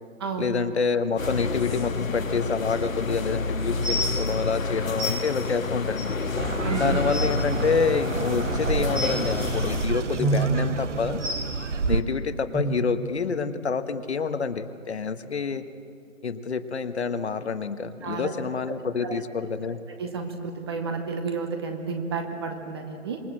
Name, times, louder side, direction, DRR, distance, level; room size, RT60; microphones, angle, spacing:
voice 1, 0.4-6.1 6.8-11.2 11.9-15.6 16.2-19.8, left 5 dB, 50° left, 10 dB, 1.2 m, -27 dB
sound 1, 1.2-9.9, left 4 dB, 75° left, 1.7 m, -29 dB
sound 2, 3.8-4.1 5.0-5.1 6.0-6.1 6.6-6.7 7.0-7.3 8.9-9.2 10.2-10.4 11.2-11.4 12.5-12.6 13.4-13.5 14.1-14.2, equal, ahead, 2.0 m, -27 dB
sound 3, 6.4-12.0, right 4 dB, 60° right, 1.2 m, -30 dB
voice 2, 6.6-7.0 18.0-18.3 19.0-19.5 20.0-23.2, right 5 dB, 20° right, 6 dB, 1.2 m, -31 dB
26.0 x 21.0 x 7.6 m, 2.5 s
figure-of-eight pair, 155°, 41 cm